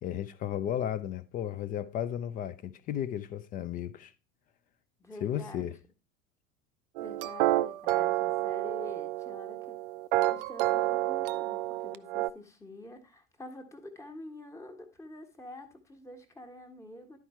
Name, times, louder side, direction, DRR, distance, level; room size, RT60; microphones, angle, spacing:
voice 1, 0.0-4.1 5.2-5.7, left 10 dB, 20° left, 0.4 m, -34 dB
voice 2, 5.0-5.7 7.0-9.8 10.3-17.2, left 1 dB, 5° left, 1.3 m, -47 dB
sound 1, 7.0-12.3, right 17 dB, 45° right, 0.4 m, -29 dB
11.0 x 4.7 x 4.3 m
figure-of-eight pair, 75°, 40 cm